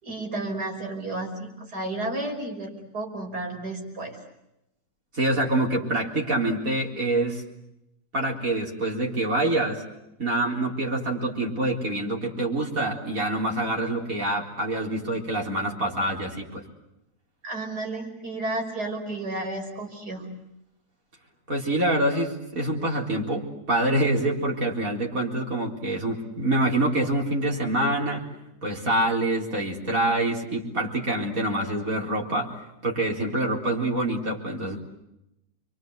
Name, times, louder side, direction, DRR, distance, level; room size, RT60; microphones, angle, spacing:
voice 1, 0.0-4.2 17.4-20.3, right 2 dB, 85° right, 2 dB, 6.3 m, -32 dB
voice 2, 5.1-7.4 8.1-9.8 10.2-16.6 21.5-28.3 28.6-32.5 32.8-34.8, right 1 dB, 60° right, -1 dB, 4.4 m, -26 dB
30.0 x 24.5 x 8.1 m, 0.86 s
omnidirectional pair, 1.7 m